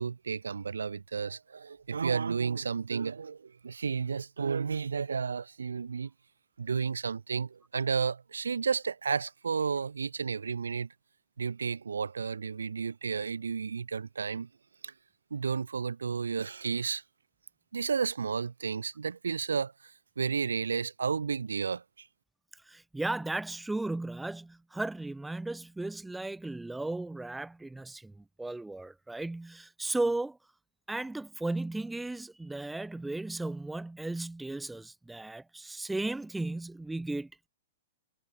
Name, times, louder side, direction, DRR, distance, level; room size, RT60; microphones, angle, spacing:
voice 1, 0.0-6.1 6.6-10.9 11.4-14.5 14.8-14.9 15.3-17.0 17.7-19.7 20.2-21.8, right 5 dB, 80° right, 3.0 m, -32 dB
voice 2, 22.7-30.4 30.9-37.5, right 2 dB, 5° right, 3.9 m, -35 dB
figure-of-eight pair, 110°, 0 cm